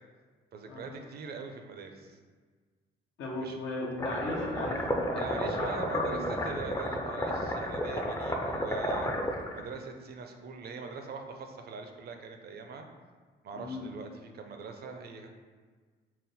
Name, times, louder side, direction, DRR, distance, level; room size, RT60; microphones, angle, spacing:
voice 1, 0.5-2.2 3.4-3.6 5.2-9.1 9.5-12.9 13.4-15.3, right 4 dB, 55° right, 5 dB, 0.5 m, -42 dB
voice 2, 3.2-6.6 13.5-13.9, left 2 dB, 90° left, -2 dB, 0.8 m, -37 dB
sound 1, 4.0-9.6, equal, 15° left, 0.4 m, -32 dB
4.1 x 2.1 x 4.0 m, 1.5 s
cardioid pair, 90°, 20 cm